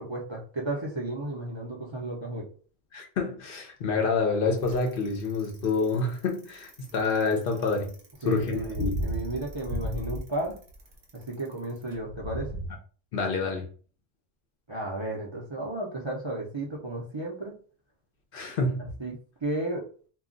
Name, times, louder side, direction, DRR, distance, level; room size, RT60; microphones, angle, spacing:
voice 1, 0.0-2.5 8.2-10.6 11.1-12.5 14.7-17.5 18.8-19.1 19.4-19.8, right 2 dB, 30° right, 0.6 m, -33 dB
voice 2, 2.9-8.0 8.2-8.9 13.1-13.7 18.3-18.8, left 4 dB, 60° left, 0.8 m, -27 dB
Bicycle, 4.6-12.7, equal, 50° right, 0.9 m, -35 dB
2.3 x 2.2 x 3.7 m
omnidirectional pair, 1.1 m